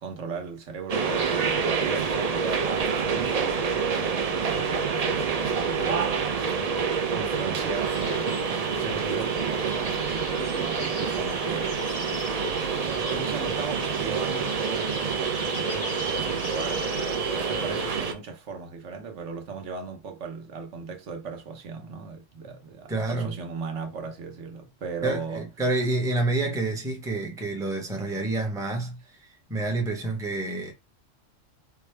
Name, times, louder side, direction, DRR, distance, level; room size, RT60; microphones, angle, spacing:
voice 1, 0.0-6.2 7.1-8.3 8.7-11.7 12.0-17.0 17.5-25.4, right 5 dB, 70° right, 1.2 m, -37 dB
sound 1, 0.9-18.1, right 5 dB, 55° right, 0.4 m, -27 dB
sound 2, 7.7-18.0, left 5 dB, 45° left, 0.6 m, -41 dB
voice 2, 22.9-23.4 25.0-30.7, right 2 dB, 5° right, 0.7 m, -28 dB
4.6 x 2.3 x 3.3 m
omnidirectional pair, 1.3 m